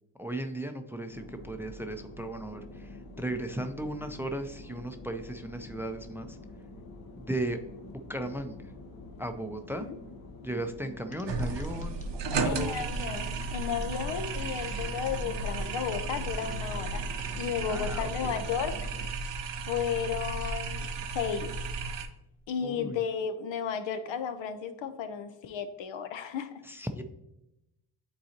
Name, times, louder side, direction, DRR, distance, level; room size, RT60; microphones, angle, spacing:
voice 1, 0.2-6.4 7.2-7.6 8.1-8.7 9.2-9.9 10.4-12.9 17.7-18.4 22.6-23.0 26.6-27.0, right 1 dB, 5° right, 7 dB, 0.4 m, -36 dB
sound 1, 1.1-19.1, left 2 dB, 50° left, 0.9 m, -47 dB
sound 2, 11.1-17.3 17.8-18.2, left 2 dB, 15° left, 0.9 m, -54 dB
sound 3, 11.3-22.1, right 3 dB, 65° right, 0.8 m, -34 dB
voice 2, 12.4-17.0 17.4-18.9 19.7-20.9 21.1-21.5 22.5-26.6, left 7 dB, 75° left, 9 dB, 0.7 m, -33 dB
9.2 x 3.9 x 2.8 m, 0.89 s
cardioid pair, 80°, 45 cm